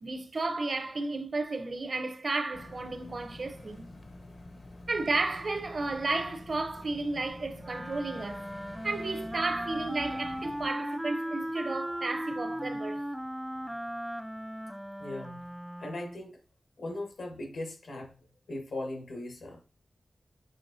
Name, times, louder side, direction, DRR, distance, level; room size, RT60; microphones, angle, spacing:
voice 1, 0.0-3.9 4.9-8.5 8.8-13.0, right 3 dB, 50° right, 0.6 m, -33 dB
sound 1, 2.5-10.7, left 2 dB, 50° left, 0.6 m, -48 dB
Wind instrument woodwind instrument, 7.6-16.3, equal, 5° right, 0.3 m, -37 dB
voice 2, 15.0-15.5 15.8-16.4 16.8-19.6, left 2 dB, 85° left, 1.2 m, -39 dB
6.3 x 3.0 x 2.6 m
wide cardioid pair, 95°, 0 cm